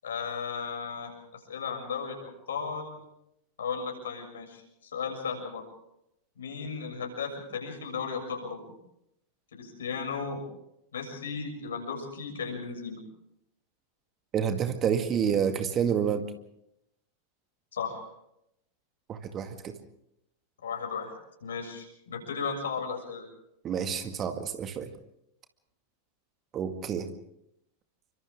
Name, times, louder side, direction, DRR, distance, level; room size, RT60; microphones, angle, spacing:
voice 1, 0.0-1.1 1.5-2.9 3.6-5.6 6.4-8.6 9.5-10.4 10.9-13.0 17.7-18.0 20.6-21.1 21.4-23.3, left 5 dB, 65° left, 2 dB, 7.0 m, -35 dB
voice 2, 14.3-16.3 19.1-19.7 23.6-24.9 26.5-27.1, right 8 dB, 30° right, 7 dB, 2.0 m, -28 dB
29.5 x 24.5 x 3.7 m, 0.78 s
figure-of-eight pair, 90°, 0 cm